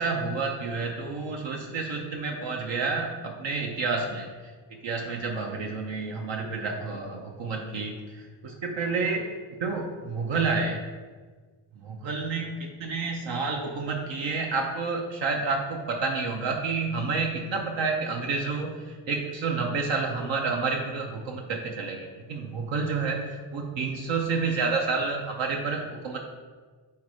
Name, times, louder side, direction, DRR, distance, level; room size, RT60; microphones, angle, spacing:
voice 1, 0.0-9.3 9.6-10.9 11.8-26.2, right 4 dB, 65° right, 1 dB, 0.8 m, -29 dB
4.7 x 4.2 x 4.7 m, 1.4 s
cardioid pair, 95°, 47 cm